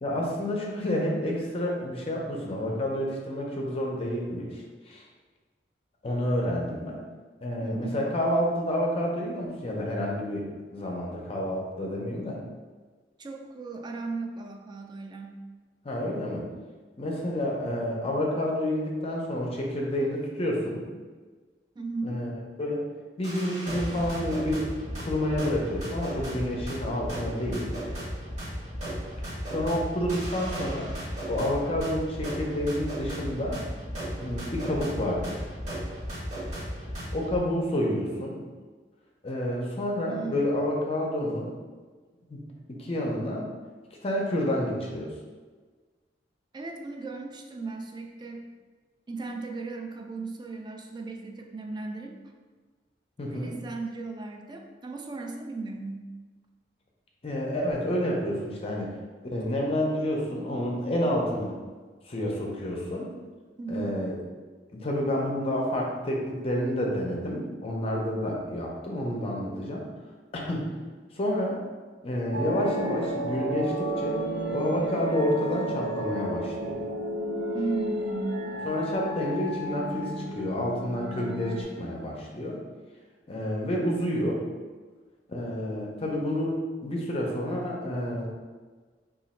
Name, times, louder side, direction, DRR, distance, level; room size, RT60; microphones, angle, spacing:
voice 1, 0.0-5.0 6.0-7.0 7.4-10.5 10.7-12.4 15.8-16.5 17.0-20.8 22.0-22.8 23.2-24.6 25.0-27.7 29.5-30.9 31.3-33.6 34.2-35.5 37.1-38.4 39.2-41.5 42.3-42.4 42.7-43.5 44.0-45.1 53.2-53.6 57.2-58.9 59.2-61.5 62.0-63.1 63.7-64.1 64.7-69.9 70.3-70.7 71.1-71.6 72.0-74.2 74.5-76.9 78.7-82.6 83.3-84.4 85.3-88.3, left 1 dB, 35° left, -1 dB, 0.5 m, -29 dB
voice 2, 7.6-8.1 13.2-15.4 21.8-22.2 40.1-40.4 46.5-48.5 49.1-52.2 53.3-56.1 63.6-63.9 77.5-78.6, right 3 dB, 25° right, 3 dB, 0.3 m, -36 dB
sound 1, 23.2-37.4, equal, 40° right, 1.1 m, -35 dB
sound 2, 72.3-81.6, right 1 dB, 80° right, 0.6 m, -32 dB
3.0 x 2.3 x 4.2 m, 1.4 s
head